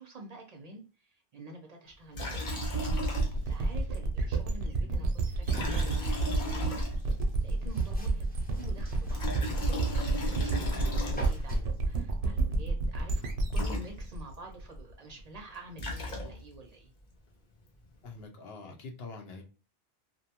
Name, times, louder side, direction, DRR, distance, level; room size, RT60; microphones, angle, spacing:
voice 1, 0.0-2.5 3.2-8.2 8.5-9.2 9.5-13.2 13.5-16.9, right 2 dB, 45° right, 2 dB, 0.6 m, -49 dB
Liquid, 2.1-3.6 3.9-4.0 5.4-7.3 8.9-11.6 13.2-13.3 13.5-14.3 15.5-16.6, left 1 dB, 55° left, 0.9 m, -36 dB
sound 1, 2.6-15.2, right 3 dB, 85° right, 0.8 m, -30 dB
sound 2, 5.4-11.6, equal, 10° left, 0.5 m, -45 dB
voice 2, 18.0-19.4, left 3 dB, 80° left, 4 dB, 0.9 m, -44 dB
2.6 x 2.2 x 2.7 m, 0.34 s
omnidirectional pair, 1.0 m